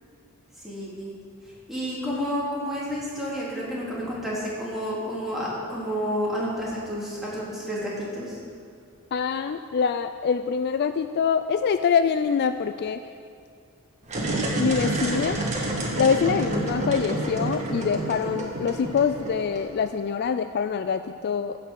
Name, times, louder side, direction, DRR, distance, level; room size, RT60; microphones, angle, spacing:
voice 1, 0.6-1.1 1.7-8.4, equal, ahead, -8 dB, 3.1 m, -30 dB
voice 2, 9.1-13.0 14.6-15.4 16.0-21.6, left 6 dB, 50° left, 10 dB, 0.3 m, -25 dB
sound 1, 14.0-19.9, right 2 dB, 35° right, 1.7 m, -28 dB
15.5 x 5.7 x 6.4 m, 2.3 s
head